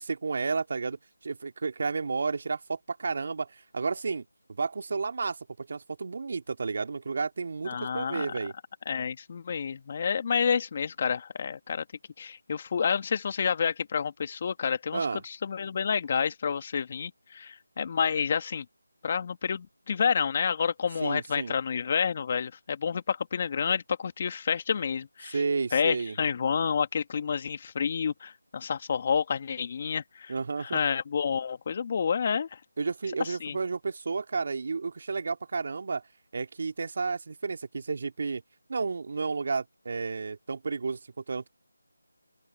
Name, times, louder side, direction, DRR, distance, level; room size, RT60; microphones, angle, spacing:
voice 1, 0.0-8.5 14.9-15.2 21.0-21.6 25.3-26.2 30.3-30.8 32.8-36.0 36.3-38.4 38.7-41.0 41.3-41.5, right 4 dB, 45° right, 2.8 m, -32 dB
voice 2, 7.7-8.3 8.9-11.8 12.2-18.6 19.0-25.4 25.7-30.3 30.6-32.5 33.2-33.6, left 6 dB, 30° left, 2.2 m, -29 dB
open air
figure-of-eight pair, 165°, 0 cm